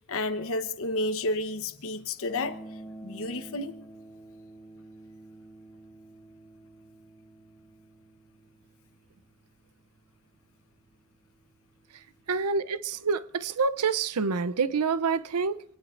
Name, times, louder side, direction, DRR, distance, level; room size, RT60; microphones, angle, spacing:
voice 1, 0.1-2.6 3.0-3.8, left 2 dB, 65° left, 1.0 m, -31 dB
sound 1, 2.3-12.4, right 2 dB, 10° left, 1.1 m, -50 dB
voice 2, 12.3-15.6, right 5 dB, 90° right, 0.6 m, -27 dB
26.0 x 18.5 x 2.5 m
head